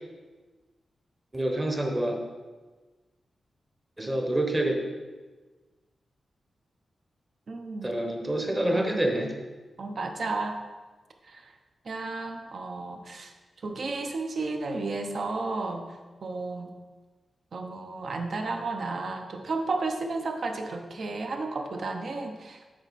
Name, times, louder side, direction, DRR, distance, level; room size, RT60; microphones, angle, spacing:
voice 1, 1.3-2.2 4.0-4.8 7.8-9.3, right 1 dB, 15° right, 2 dB, 1.0 m, -27 dB
voice 2, 7.5-7.9 8.7-9.0 9.8-10.6 11.3-11.5 11.9-13.3 13.6-15.8 16.2-16.7 17.5-22.7, right 3 dB, 55° right, 4 dB, 0.8 m, -33 dB
7.7 x 5.5 x 4.1 m, 1.3 s
wide cardioid pair, 140°, 0 cm